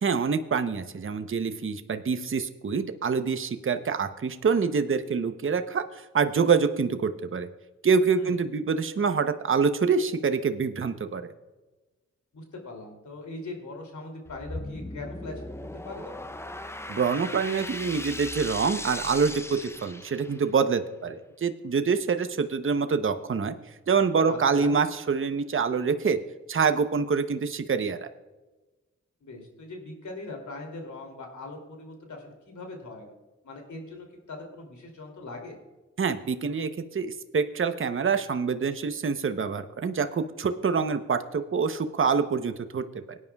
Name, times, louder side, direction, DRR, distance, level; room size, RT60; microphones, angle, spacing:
voice 1, 0.0-7.5 7.8-11.3 16.9-23.5 23.9-26.2 26.5-28.1 36.0-43.2, right 5 dB, 45° right, 9 dB, 0.8 m, -26 dB
voice 2, 12.3-15.3 15.8-16.3 24.3-24.7 29.2-33.1 33.4-35.6, left 2 dB, 75° left, 2 dB, 2.8 m, -41 dB
sound 1, 14.2-20.5, left 1 dB, 10° left, 0.6 m, -38 dB
18.5 x 9.7 x 2.3 m, 1.1 s
cardioid pair, 45°, 29 cm